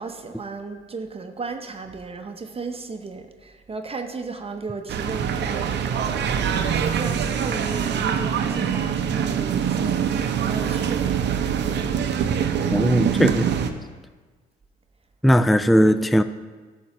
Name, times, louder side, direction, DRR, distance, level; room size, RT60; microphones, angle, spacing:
voice 1, 0.0-11.2, right 4 dB, 30° right, 6 dB, 0.8 m, -35 dB
sound 1, 4.9-13.7, right 8 dB, 60° right, 0.7 m, -24 dB
voice 2, 12.7-13.4 15.2-16.2, equal, ahead, 12 dB, 0.3 m, -18 dB
11.0 x 7.4 x 3.0 m, 1.4 s
supercardioid pair, 65°, 20 cm